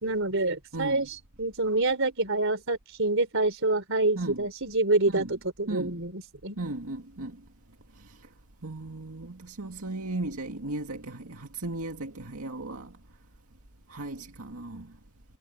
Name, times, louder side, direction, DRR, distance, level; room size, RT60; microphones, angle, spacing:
voice 1, 0.0-6.6, right 2 dB, 60° right, 4.3 m, -27 dB
voice 2, 0.7-1.1 4.2-4.4 5.1-5.3 5.7-6.0 6.6-7.4 8.0-8.3 8.6-12.9 13.9-15.0, right 2 dB, 85° right, 2.2 m, -36 dB
head